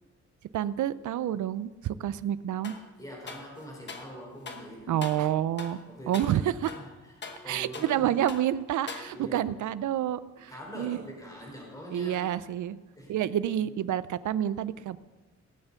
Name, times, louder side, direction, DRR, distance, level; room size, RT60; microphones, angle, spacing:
voice 1, 0.5-2.7 4.9-5.8 6.1-6.5 7.5-11.0 11.9-12.8 13.1-15.0, right 11 dB, 80° right, 16 dB, 0.6 m, -29 dB
sound 1, 2.6-2.9 3.3-4.1 4.5-4.7 5.0-5.3 5.6-5.8 6.1-6.4 6.7-8.0 8.3-8.5 8.9-9.4, left 4 dB, 35° left, 1.2 m, -42 dB
voice 2, 3.0-5.2 5.9-8.2 9.1-9.5 10.5-12.4 12.9-13.7, equal, 10° left, -2 dB, 4.7 m, -44 dB
18.0 x 8.2 x 6.9 m, 1.3 s
wide cardioid pair, 170°, 30 cm